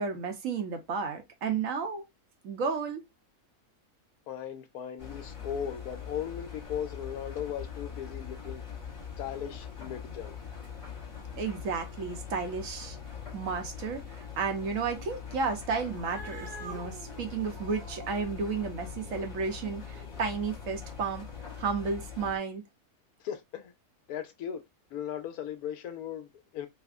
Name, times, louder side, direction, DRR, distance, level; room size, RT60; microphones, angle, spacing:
voice 1, 0.0-2.0 2.4-3.0 11.4-13.0 13.3-21.2 21.6-22.6, right 5 dB, 65° right, 1.1 m, -32 dB
voice 2, 4.3-8.6 9.2-10.4 23.2-23.7 24.1-24.6 24.9-26.7, left 9 dB, 80° left, 1.2 m, -37 dB
Engine, 5.0-22.4, left 7 dB, 25° left, 0.9 m, -42 dB
Cat, 15.8-20.5, right 3 dB, 40° right, 0.9 m, -48 dB
3.3 x 2.1 x 3.5 m
omnidirectional pair, 1.6 m